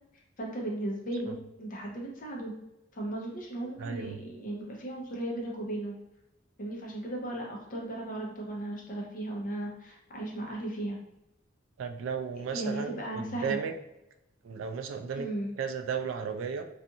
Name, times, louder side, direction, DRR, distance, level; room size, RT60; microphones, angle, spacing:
voice 1, 0.4-2.5 2.9-6.0 6.6-11.0 12.5-13.6 15.2-15.5, right 1 dB, 45° left, -1 dB, 0.7 m, -36 dB
voice 2, 3.8-4.2 11.8-13.7 14.4-15.3 15.6-16.6, right 6 dB, 85° right, 6 dB, 0.3 m, -34 dB
2.4 x 2.4 x 2.7 m, 0.90 s
head